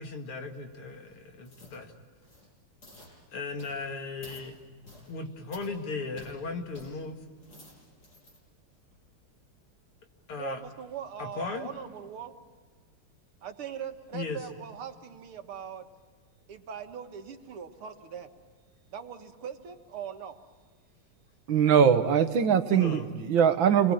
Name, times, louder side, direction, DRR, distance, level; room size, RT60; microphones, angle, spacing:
voice 1, 0.0-1.9 3.3-4.6 5.1-7.2 10.3-10.6 11.2-11.7 14.1-14.4 22.7-23.1, left 4 dB, 85° left, 4 dB, 3.1 m, -36 dB
sound 1, 1.4-1.8 2.2-2.5 2.8-3.1 3.6-3.8 4.2-4.5 4.8-5.1 5.5-5.7 6.2-6.3 6.7-6.9 7.3-8.4 8.8-9.0, left 1 dB, 50° left, 7.3 m, -51 dB
voice 2, 10.3-12.3 13.4-15.9 16.5-18.3 18.9-20.4, right 8 dB, 85° right, 6 dB, 2.4 m, -40 dB
voice 3, 21.5-23.9, right 8 dB, 65° right, 9 dB, 1.9 m, -22 dB
28.0 x 21.5 x 8.8 m, 1.5 s
omnidirectional pair, 2.3 m